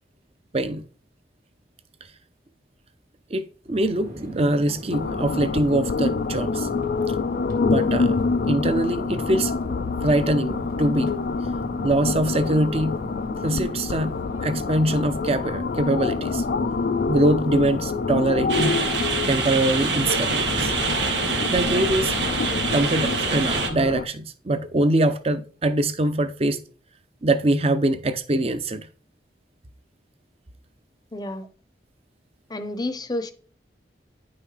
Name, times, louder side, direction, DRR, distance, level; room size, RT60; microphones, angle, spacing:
voice 1, 3.3-6.7 7.6-8.2 8.4-9.5 10.0-11.1 11.8-13.0 13.4-14.1 14.4-16.4 17.1-18.8 19.3-20.7 21.5-22.1 22.7-26.6 27.2-28.9, right 1 dB, 35° right, 0.7 m, -23 dB
Chatter / Fixed-wing aircraft airplane, 3.6-22.6, left 1 dB, 50° right, 1.7 m, -38 dB
sound 1, 4.9-24.1, left 4 dB, 60° left, 0.4 m, -27 dB
sound 2, 18.5-23.7, right 4 dB, 90° right, 1.5 m, -25 dB
voice 2, 31.1-31.4 32.5-33.3, left 2 dB, 20° left, 0.7 m, -30 dB
9.9 x 5.6 x 3.3 m
head